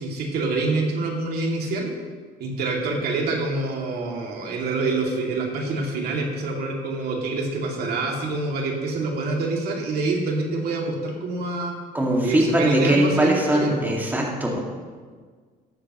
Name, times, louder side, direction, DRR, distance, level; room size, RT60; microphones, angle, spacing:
voice 1, 0.0-1.9 2.4-11.8 12.2-14.0, right 3 dB, 70° right, -1 dB, 2.6 m, -26 dB
voice 2, 11.9-14.6, right 1 dB, 10° right, -2 dB, 2.2 m, -21 dB
14.0 x 12.5 x 3.1 m, 1.5 s
cardioid pair, 110°, 17 cm